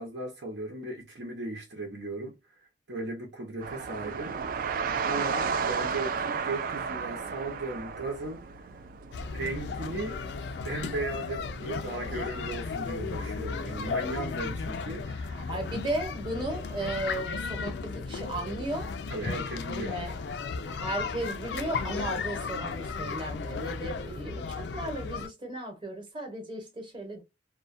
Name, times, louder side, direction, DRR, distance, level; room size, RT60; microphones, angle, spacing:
voice 1, 0.0-2.3 2.9-4.4 5.0-8.5 9.3-10.2 10.6-15.5 19.1-20.2, right 2 dB, 80° right, 0.8 m, -36 dB
sound 1, 3.6-12.6, right 5 dB, 50° right, 0.3 m, -34 dB
sound 2, 9.1-25.3, left 4 dB, 70° left, 0.4 m, -35 dB
voice 2, 15.3-18.9 19.9-20.2 20.6-27.2, right 1 dB, 30° right, 0.9 m, -35 dB
2.3 x 2.2 x 2.5 m
head